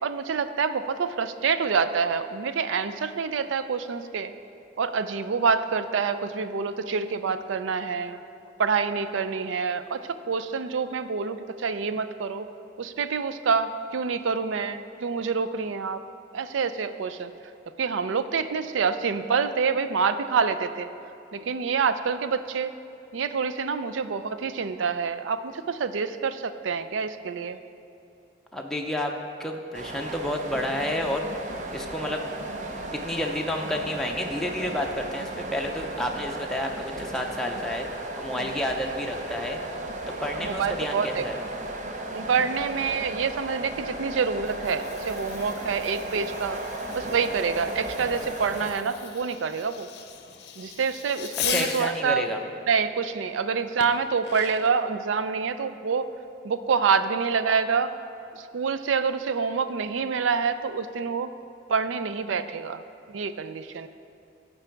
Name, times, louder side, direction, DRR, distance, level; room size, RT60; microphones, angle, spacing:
voice 1, 0.0-4.3 4.8-8.2 8.6-12.5 12.8-16.0 16.3-17.3 17.8-20.9 21.3-22.7 23.1-27.6 38.4-38.6 40.4-41.2 42.1-46.6 46.9-49.9 50.6-52.2 52.7-56.1 56.4-57.9 58.3-61.3 61.7-62.8 63.1-63.9, right 5 dB, 90° right, 12 dB, 0.4 m, -27 dB
voice 2, 28.5-29.1 29.4-31.2 31.5-32.3 32.9-37.9 38.2-39.6 40.2-41.4 51.5-52.4, left 1 dB, ahead, 1 dB, 0.5 m, -30 dB
sound 1, 29.7-48.7, right 1 dB, 40° right, 0.6 m, -35 dB
Fireworks, 44.3-52.0 53.8-54.8, left 8 dB, 60° left, 0.6 m, -38 dB
14.0 x 4.7 x 4.5 m, 2.7 s
head